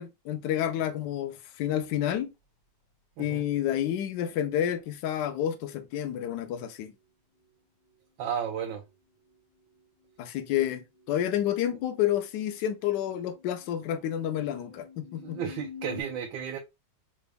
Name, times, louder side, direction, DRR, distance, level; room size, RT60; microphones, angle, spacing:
voice 1, 0.0-2.3 3.2-6.9 10.2-15.4, left 11 dB, 75° left, 1.1 m, -29 dB
voice 2, 8.2-8.8 15.2-16.6, right 8 dB, 85° right, 1.3 m, -33 dB
sound 1, 8.8-8.9 9.2-16.0, left 7 dB, 40° left, 2.2 m, -49 dB
4.0 x 3.3 x 2.2 m
omnidirectional pair, 2.0 m